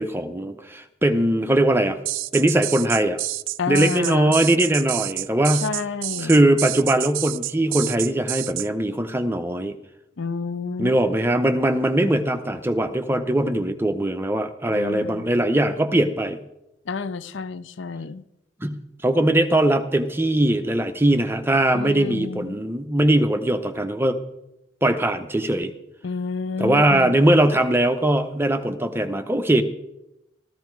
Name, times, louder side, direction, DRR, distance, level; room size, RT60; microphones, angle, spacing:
voice 1, 0.0-2.0 2.3-3.2 3.7-5.7 6.2-9.8 10.8-16.4 18.6-18.8 19.0-24.2 24.8-25.7 26.6-29.6, right 1 dB, 10° right, 8 dB, 0.7 m, -21 dB
sound 1, 2.1-8.7, right 16 dB, 85° right, 0.5 m, -29 dB
voice 2, 3.6-4.3 5.6-6.4 10.2-10.9 14.7-15.3 16.9-18.2 21.7-22.6 26.0-27.1, left 4 dB, 70° left, 16 dB, 0.5 m, -29 dB
14.0 x 12.5 x 4.6 m, 0.89 s
head